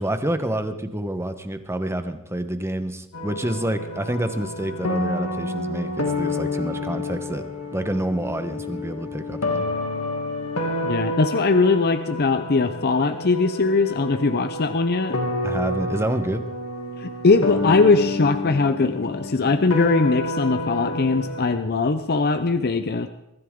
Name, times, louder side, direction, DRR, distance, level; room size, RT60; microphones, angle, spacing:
voice 1, 0.0-9.6 15.4-16.5, right 1 dB, 10° right, 9 dB, 1.1 m, -28 dB
sound 1, 3.1-21.6, left 2 dB, 75° left, 2.4 m, -29 dB
voice 2, 10.8-15.2 17.0-23.1, left 3 dB, 45° left, 9 dB, 0.7 m, -20 dB
23.0 x 14.0 x 3.8 m, 0.90 s
head